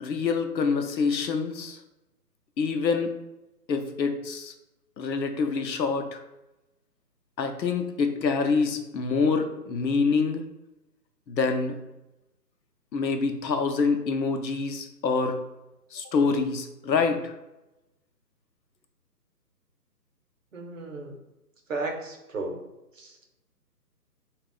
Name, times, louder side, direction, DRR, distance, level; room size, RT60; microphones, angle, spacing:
voice 1, 0.0-1.8 2.6-3.1 3.7-4.5 5.0-6.2 7.4-10.4 11.3-11.8 12.9-15.4 15.9-17.3, left 4 dB, 85° left, 6 dB, 0.7 m, -26 dB
voice 2, 20.5-21.2 21.7-22.6 22.9-23.3, right 3 dB, 50° right, 2 dB, 0.7 m, -34 dB
3.5 x 2.3 x 3.7 m, 0.97 s
hypercardioid pair, 175°, 50 cm